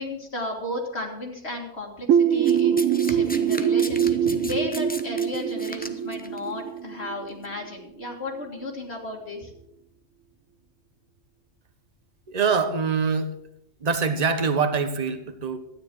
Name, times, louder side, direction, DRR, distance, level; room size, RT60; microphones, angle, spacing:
voice 1, 0.0-9.5, left 2 dB, 45° left, 0 dB, 2.2 m, -34 dB
sound 1, 2.1-7.6, right 8 dB, 70° right, 1.0 m, -23 dB
Domestic sounds home sounds, 2.4-6.4 7.3-7.5, left 1 dB, 10° left, 0.6 m, -37 dB
voice 2, 12.3-13.3 13.8-15.6, right 5 dB, 30° right, 8 dB, 1.1 m, -24 dB
12.5 x 9.7 x 6.1 m, 0.81 s
omnidirectional pair, 1.5 m